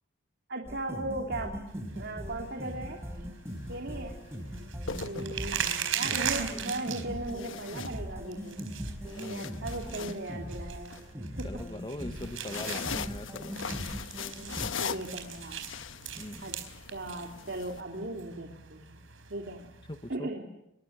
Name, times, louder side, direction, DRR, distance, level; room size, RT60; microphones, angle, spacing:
voice 1, 0.5-1.6 1.9-3.0 3.7-4.2 5.0-5.6 5.9-8.6 9.2-11.0 11.4-11.6 14.8-15.6 16.4-19.0 19.3-19.6 20.1-20.5, right 2 dB, 55° right, 2 dB, 3.0 m, -37 dB
sound 1, 0.7-14.7, equal, 15° right, 5.0 m, -40 dB
sound 2, 1.7-20.2, right 8 dB, 75° right, 4.4 m, -40 dB
sound 3, 3.5-3.7 4.6-5.8 7.3-8.5 8.9-11.0 12.1-17.8, left 6 dB, 70° left, 1.2 m, -40 dB
voice 2, 6.0-6.6 9.0-9.4 11.4-13.6 16.2-16.5 19.9-20.3, left 1 dB, 25° left, 9 dB, 1.2 m, -41 dB
26.0 x 22.0 x 9.3 m, 0.85 s
head